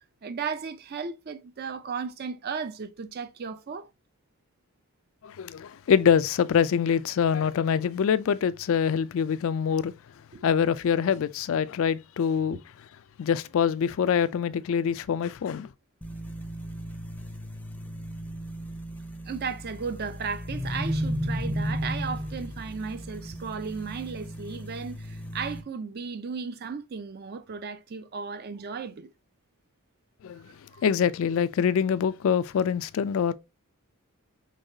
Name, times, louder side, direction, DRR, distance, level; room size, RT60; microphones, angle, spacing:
voice 1, 0.2-3.9 10.3-10.5 19.2-29.1 30.7-30.8, right 5 dB, 45° right, 0.4 m, -35 dB
voice 2, 5.2-9.9 10.4-12.6 13.2-15.7 30.2-30.5 30.8-33.3, left 7 dB, 60° left, 0.3 m, -25 dB
sound 1, 16.0-25.6, equal, 5° left, 0.5 m, -34 dB
5.4 x 3.1 x 2.7 m
head